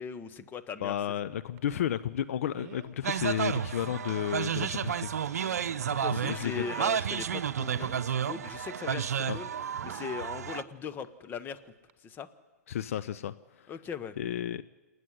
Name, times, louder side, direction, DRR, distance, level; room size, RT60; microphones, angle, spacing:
voice 1, 0.0-1.2 5.9-9.5 9.8-11.7 12.0-12.3 13.7-14.2, left 7 dB, 20° left, 11 dB, 1.1 m, -39 dB
voice 2, 0.8-5.8 6.1-6.6 9.3-9.4 12.7-13.7 14.2-14.6, left 10 dB, 60° left, 13 dB, 0.6 m, -33 dB
sound 1, 1.6-1.7 2.5-3.0 3.4-3.5 3.8-4.1 5.0-5.9 6.4-7.1 7.7-8.2 9.7-10.2 11.3-11.5 11.9-12.0, right 11 dB, 45° right, 1.3 m, -50 dB
sound 2, 3.0-10.6, right 8 dB, 70° right, 0.7 m, -31 dB
28.5 x 9.5 x 9.9 m, 1.3 s
hypercardioid pair, 120°, 9 cm